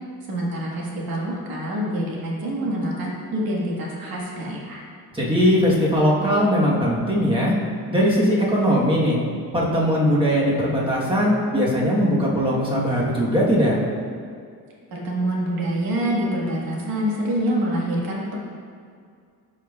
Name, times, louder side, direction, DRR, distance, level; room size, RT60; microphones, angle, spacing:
voice 1, 0.3-4.8 14.9-18.4, right 1 dB, 70° right, -3 dB, 1.7 m, -26 dB
voice 2, 5.1-7.5 7.9-9.2 9.5-13.8, equal, 15° right, -5 dB, 1.2 m, -20 dB
11.5 x 5.1 x 2.4 m, 2.2 s
cardioid pair, 155°, 37 cm